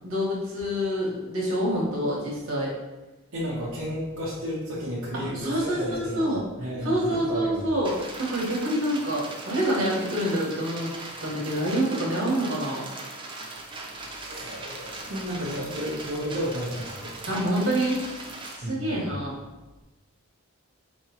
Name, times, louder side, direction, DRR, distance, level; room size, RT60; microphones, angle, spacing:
voice 1, 0.0-2.7 5.1-7.9 8.2-10.9 11.2-12.9 17.3-18.0 18.5-19.3, equal, 75° right, -4 dB, 1.3 m, -27 dB
voice 2, 3.3-7.6 14.3-17.2 18.6-19.1, equal, 60° right, -9 dB, 0.9 m, -32 dB
sound 1, 7.8-18.6, right 2 dB, 25° right, 0.5 m, -39 dB
4.7 x 3.0 x 2.9 m, 1.1 s
head